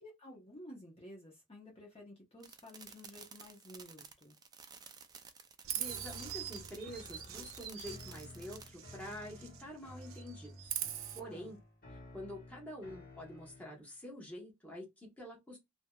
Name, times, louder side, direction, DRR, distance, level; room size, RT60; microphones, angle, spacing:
voice 1, 0.0-4.4 11.2-11.5, left 1 dB, 30° left, 0.9 m, -53 dB
sound 1, 2.4-8.7, right 6 dB, 20° right, 0.4 m, -53 dB
Chirp tweet, 5.6-9.7 10.0-11.2, right 11 dB, 85° right, 0.5 m, -43 dB
voice 2, 5.7-10.8 11.1-11.6 12.1-15.6, equal, 10° left, 1.1 m, -47 dB
sound 2, 5.8-13.9, left 1 dB, 45° left, 1.3 m, -54 dB
2.8 x 2.8 x 2.3 m
head